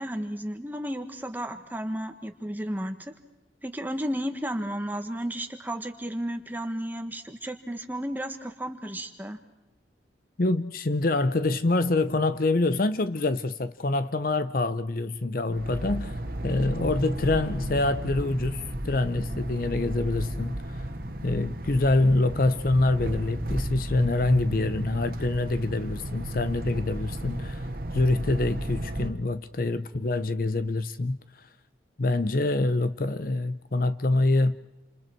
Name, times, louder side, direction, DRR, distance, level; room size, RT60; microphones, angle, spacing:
voice 1, 0.0-3.1 3.6-9.4, equal, 10° right, 1.6 m, -33 dB
voice 2, 10.4-16.1 16.4-20.9 21.2-27.7 27.9-31.2 32.0-34.6, left 2 dB, 50° left, 0.7 m, -26 dB
sound 1, 15.5-29.1, right 1 dB, 50° right, 1.8 m, -33 dB
29.0 x 27.0 x 4.6 m
head